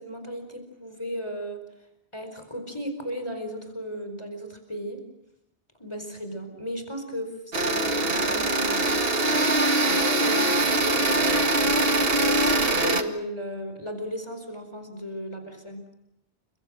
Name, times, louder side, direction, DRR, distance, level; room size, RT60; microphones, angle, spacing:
voice 1, 0.0-1.6 2.1-5.0 5.8-8.9 10.2-11.8 12.1-15.8, equal, 25° left, 6 dB, 4.6 m, -35 dB
sound 1, 7.5-13.0, right 2 dB, 60° right, 2.2 m, -22 dB
30.0 x 25.5 x 6.4 m, 0.79 s
omnidirectional pair, 1.1 m